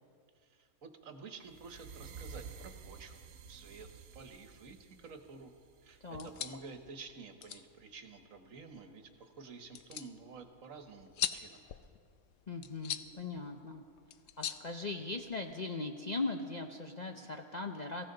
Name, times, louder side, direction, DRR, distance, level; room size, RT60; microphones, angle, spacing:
voice 1, 0.4-5.5 5.8-11.6, right 4 dB, 65° right, 7 dB, 1.5 m, -51 dB
sound 1, 1.4-6.5, right 5 dB, 80° right, 1.2 m, -51 dB
sound 2, 6.1-15.5, left 9 dB, 65° left, 0.9 m, -44 dB
voice 2, 12.5-13.8 14.4-18.0, left 3 dB, 40° left, 3 dB, 0.6 m, -39 dB
22.5 x 15.5 x 3.9 m, 2.1 s
omnidirectional pair, 1.5 m